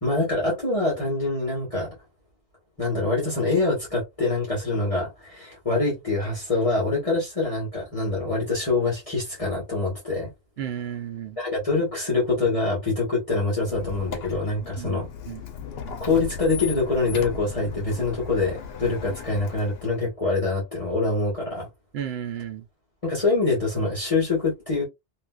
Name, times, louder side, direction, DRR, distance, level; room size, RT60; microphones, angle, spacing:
voice 1, 0.0-1.9 2.8-10.3 11.4-15.1 16.0-21.7 23.0-24.8, left 3 dB, 35° left, 1.4 m, -25 dB
voice 2, 10.6-11.4 14.8-15.4 21.9-22.6, right 10 dB, 80° right, 0.9 m, -33 dB
Squeak, 13.6-20.0, left 5 dB, 75° left, 0.9 m, -36 dB
3.1 x 2.8 x 2.3 m
omnidirectional pair, 1.0 m